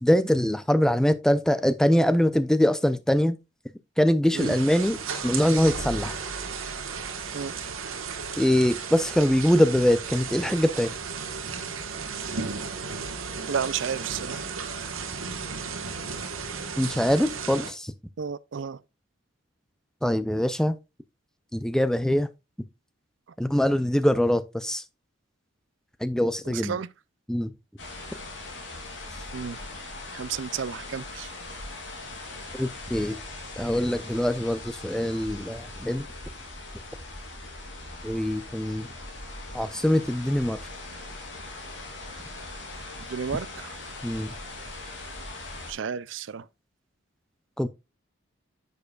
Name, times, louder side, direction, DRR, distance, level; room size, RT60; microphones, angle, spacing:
voice 1, 0.0-3.4 4.0-5.0 5.2-6.2 8.4-10.9 16.8-17.9 20.0-20.8 21.5-22.3 23.4-24.8 26.0-26.8 27.3-27.5 32.6-33.2 33.6-36.1 38.0-38.9 39.5-40.6 44.0-44.3 47.6-47.7, equal, 5° left, 0.4 m, -23 dB
sound 1, 4.4-17.7, right 5 dB, 80° right, 1.4 m, -34 dB
voice 2, 13.5-14.5 18.2-18.8 26.5-26.9 29.3-29.6 30.1-31.3 43.1-43.8 45.7-46.5, right 7 dB, 65° right, 0.4 m, -32 dB
sound 2, 27.8-45.7, left 2 dB, 60° left, 2.8 m, -40 dB
9.6 x 6.8 x 2.4 m
head